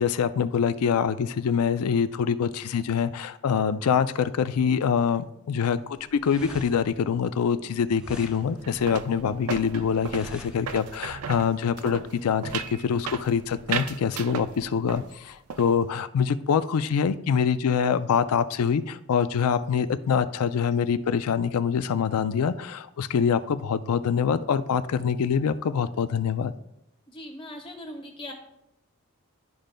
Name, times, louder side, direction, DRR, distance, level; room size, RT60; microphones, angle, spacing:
voice 1, 0.0-26.5, left 7 dB, 80° left, 14 dB, 0.4 m, -25 dB
sound 1, 5.8-11.2, equal, 5° right, 0.4 m, -47 dB
sound 2, 8.6-15.1 15.3-15.8, right 7 dB, 75° right, 0.4 m, -36 dB
voice 2, 27.1-28.3, left 1 dB, 25° left, 1 dB, 1.2 m, -40 dB
12.0 x 5.1 x 2.2 m, 0.84 s
head